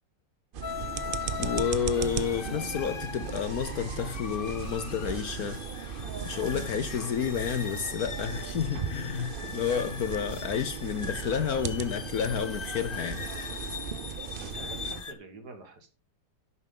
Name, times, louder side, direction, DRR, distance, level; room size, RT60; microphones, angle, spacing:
sound 1, 0.5-15.0, right 7 dB, 80° right, 0.4 m, -37 dB
sound 2, 0.6-15.1, left 7 dB, 40° left, 0.8 m, -40 dB
voice 1, 1.4-5.6 6.2-13.2, left 8 dB, 60° left, 1.1 m, -30 dB
voice 2, 14.2-15.9, right 3 dB, 55° right, 2.3 m, -47 dB
11.0 x 8.2 x 3.8 m
omnidirectional pair, 2.0 m